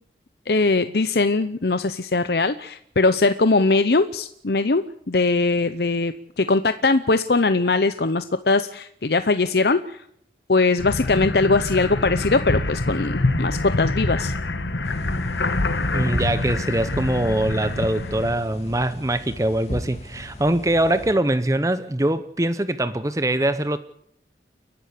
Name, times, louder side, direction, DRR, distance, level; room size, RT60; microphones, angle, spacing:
voice 1, 0.5-10.0 10.5-14.3, left 3 dB, 65° left, 0.8 m, -21 dB
sound 1, 10.8-18.3, left 2 dB, 85° left, 1.5 m, -26 dB
sound 2, 14.8-21.1, equal, 40° left, 3.0 m, -37 dB
voice 2, 15.9-23.8, right 1 dB, 20° right, 0.7 m, -23 dB
30.0 x 11.5 x 8.4 m
head